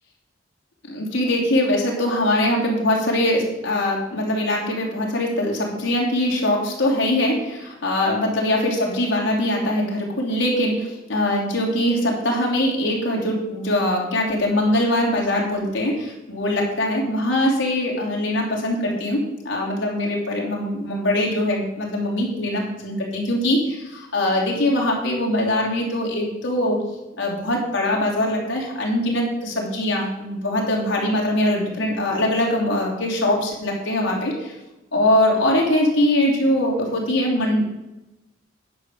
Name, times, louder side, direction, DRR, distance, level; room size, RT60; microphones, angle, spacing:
voice 1, 0.9-26.8 27.2-34.5 34.9-37.6, left 1 dB, 70° left, -2 dB, 3.1 m, -22 dB
10.0 x 5.3 x 7.3 m, 0.98 s
head